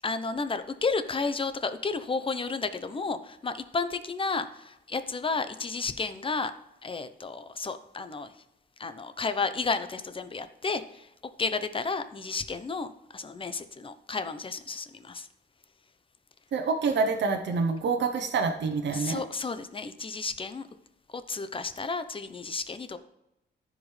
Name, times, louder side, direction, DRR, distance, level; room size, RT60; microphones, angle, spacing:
voice 1, 0.0-6.5 6.8-8.3 8.8-11.1 11.4-15.3 18.9-20.7 21.1-23.0, left 4 dB, 30° left, 11 dB, 0.8 m, -32 dB
voice 2, 16.5-19.2, right 4 dB, 80° right, 3 dB, 0.8 m, -27 dB
14.5 x 5.1 x 3.3 m, 0.89 s
wide cardioid pair, 110°, 18 cm